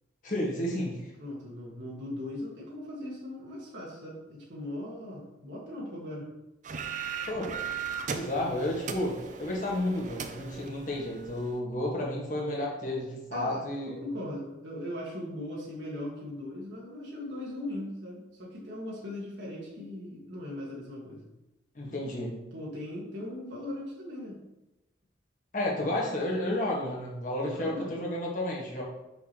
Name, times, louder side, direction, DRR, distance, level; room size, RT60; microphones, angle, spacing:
voice 1, 0.2-1.1 7.3-7.5 8.1-14.0 21.7-22.5 25.5-28.8, left 1 dB, 40° left, -3 dB, 1.5 m, -32 dB
voice 2, 1.2-6.3 13.3-21.3 22.5-24.4 27.4-28.0, left 1 dB, 70° right, -4 dB, 1.6 m, -39 dB
sound 1, 6.6-11.6, right 6 dB, 40° right, 0.4 m, -38 dB
5.8 x 5.8 x 3.0 m, 0.98 s
head